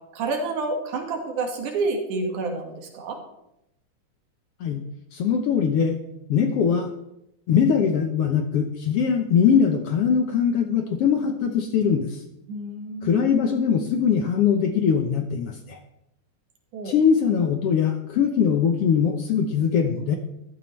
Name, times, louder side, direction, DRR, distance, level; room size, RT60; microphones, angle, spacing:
voice 1, 0.1-3.2 12.5-13.3 16.7-16.9, right 3 dB, 85° right, 3 dB, 3.2 m, -29 dB
voice 2, 5.1-5.9 6.3-6.9 7.5-12.2 13.0-15.8 16.8-20.2, left 7 dB, 70° left, 5 dB, 1.5 m, -21 dB
14.0 x 12.0 x 3.2 m, 0.85 s
omnidirectional pair, 3.5 m